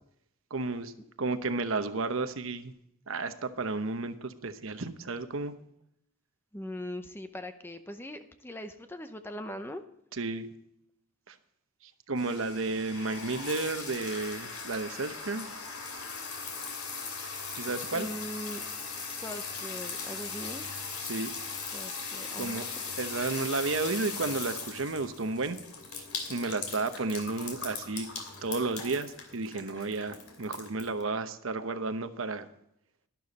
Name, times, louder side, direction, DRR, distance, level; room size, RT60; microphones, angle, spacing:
voice 1, 0.5-0.9 1.2-2.7 3.1-5.5 10.1-10.5 11.3-11.4 11.8-15.5 17.5-18.1 21.1-21.3 22.4-22.6 23.0-25.6 25.9-28.1 28.4-32.5, right 3 dB, 70° right, 10 dB, 0.9 m, -32 dB
voice 2, 6.5-9.8 17.9-18.6 19.0-20.6 21.7-22.7, equal, 10° left, 8 dB, 0.7 m, -41 dB
sound 1, 12.2-31.0, left 5 dB, 85° left, 2.8 m, -39 dB
12.0 x 11.5 x 4.1 m, 0.76 s
head